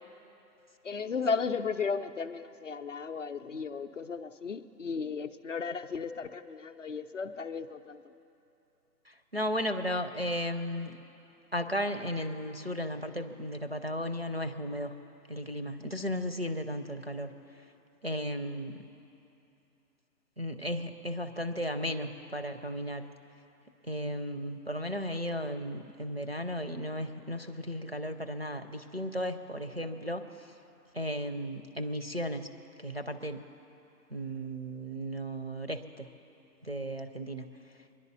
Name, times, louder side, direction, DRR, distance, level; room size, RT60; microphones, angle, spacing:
voice 1, 0.8-8.0, left 5 dB, 50° left, 9 dB, 0.5 m, -35 dB
voice 2, 9.1-11.0 11.5-14.9 15.3-17.3 18.0-18.8 20.4-23.1 23.9-30.5 30.9-32.5 32.8-33.4 34.1-36.1 36.6-37.4, equal, 40° right, 8 dB, 0.4 m, -35 dB
24.0 x 11.0 x 4.1 m, 2.9 s
hypercardioid pair, 175°, 49 cm